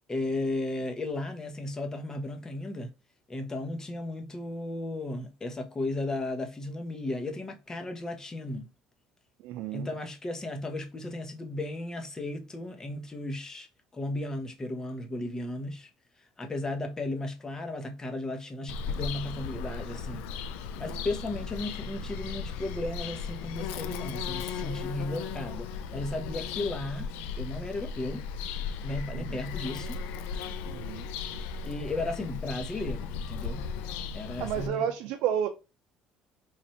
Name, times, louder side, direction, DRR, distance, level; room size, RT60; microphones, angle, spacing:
voice 1, 0.1-2.9 3.3-8.7 9.7-13.7 13.9-15.9 16.4-20.2 20.8-27.1 27.4-28.2 28.8-30.0 31.6-33.7 34.1-34.9, left 2 dB, 25° left, 0.9 m, -35 dB
voice 2, 9.4-9.9 29.1-29.4 30.7-31.1 34.4-35.5, right 9 dB, 80° right, 0.5 m, -31 dB
Bird vocalization bird call bird song, 18.7-34.7, left 5 dB, 85° left, 0.4 m, -36 dB
3.2 x 2.5 x 4.3 m
supercardioid pair, 90°, 3 cm